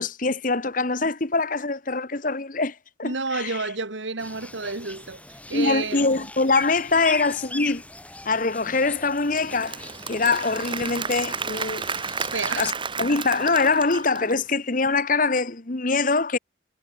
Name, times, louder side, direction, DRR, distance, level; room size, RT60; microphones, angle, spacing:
voice 1, 0.0-3.6 5.5-7.8 8.2-9.8 10.1-11.8 12.6-12.7 13.0-16.4, left 3 dB, 45° left, 1.3 m, -23 dB
voice 2, 3.0-6.1 12.3-12.7, right 3 dB, 75° right, 2.4 m, -30 dB
sound 1, 4.2-12.7, left 2 dB, 5° left, 3.9 m, -40 dB
Applause / Crowd, 9.1-14.5, right 5 dB, 25° right, 2.1 m, -32 dB
head